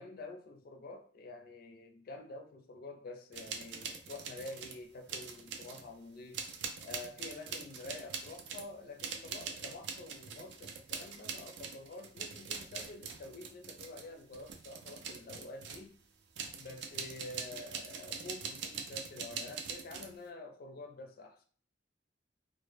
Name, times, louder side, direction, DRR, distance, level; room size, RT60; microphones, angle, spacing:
voice 1, 0.0-6.5 6.8-16.0 16.6-21.4, left 2 dB, 50° left, 0.4 m, -48 dB
sound 1, 3.3-4.8 5.1-5.9 6.3-15.9 16.4-20.2, right 6 dB, 65° right, 0.4 m, -43 dB
2.0 x 2.0 x 3.2 m
head